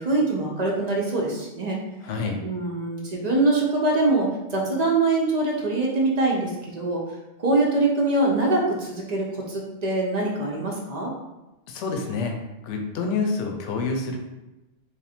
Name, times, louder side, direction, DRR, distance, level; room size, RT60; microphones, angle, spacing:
voice 1, 0.0-1.8 2.4-7.0 7.4-11.1, right 2 dB, 45° right, -2 dB, 0.6 m, -23 dB
voice 2, 2.0-2.4 11.7-12.3 12.6-14.2, left 4 dB, 80° left, 2 dB, 0.9 m, -27 dB
3.4 x 2.6 x 4.1 m, 0.99 s
omnidirectional pair, 1.2 m